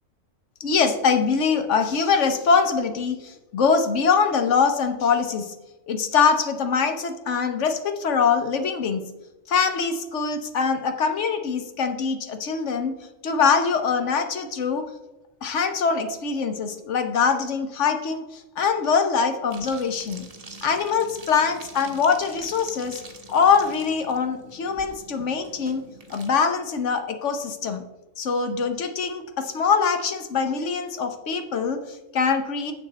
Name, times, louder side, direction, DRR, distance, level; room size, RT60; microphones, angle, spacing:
voice 1, 0.6-5.5 5.9-9.0 9.5-12.9 13.2-14.9 15.4-20.3 20.6-23.0 23.3-25.8 26.1-27.8 28.2-32.7, left 5 dB, 70° left, 7 dB, 1.2 m, -23 dB
sound 1, 19.5-26.3, right 3 dB, 30° right, 1.1 m, -44 dB
10.5 x 7.1 x 4.1 m, 1.0 s
omnidirectional pair, 1.3 m